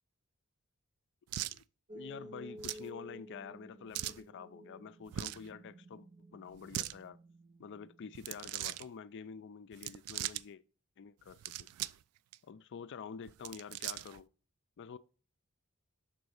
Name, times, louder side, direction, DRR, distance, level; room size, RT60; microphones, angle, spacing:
sound 1, 1.3-1.6 2.6-2.9 3.9-4.2 5.1-5.5 6.5-7.0 8.1-8.8 9.7-10.4 11.3-12.0 12.3-12.4 13.3-14.2, right 14 dB, 85° right, 0.3 m, -40 dB
voice 1, 1.9-7.2 7.6-10.6 11.0-11.7 12.4-14.3 14.8-15.0, left 6 dB, 55° left, 0.4 m, -48 dB
sound 2, 1.9-8.8, equal, 35° right, 0.7 m, -53 dB
6.1 x 4.0 x 6.3 m
head